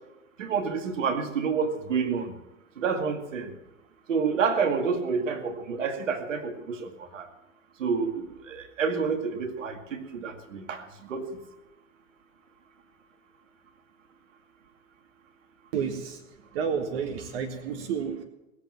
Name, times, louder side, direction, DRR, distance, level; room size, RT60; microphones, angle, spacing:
voice 1, 0.4-2.3 2.8-3.5 4.1-7.3 7.8-11.2, right 5 dB, 70° right, 5 dB, 2.3 m, -29 dB
voice 2, 15.7-16.2 16.5-18.2, right 6 dB, 45° right, 5 dB, 1.9 m, -30 dB
19.5 x 8.1 x 7.5 m, 0.98 s
hypercardioid pair, 115°, 39 cm